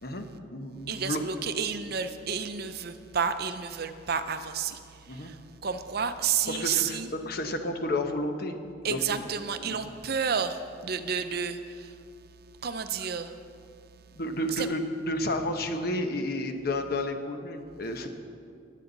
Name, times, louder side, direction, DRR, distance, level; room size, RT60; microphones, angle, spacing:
voice 1, 0.0-1.2 5.1-5.3 6.5-8.6 8.9-9.2 9.6-9.9 13.0-13.1 14.1-18.1, left 1 dB, 55° left, 6 dB, 1.0 m, -31 dB
voice 2, 0.9-7.1 8.8-12.0 12.6-13.3 14.6-14.7, right 6 dB, 55° right, 9 dB, 0.6 m, -31 dB
20.5 x 8.3 x 4.0 m, 2.4 s
head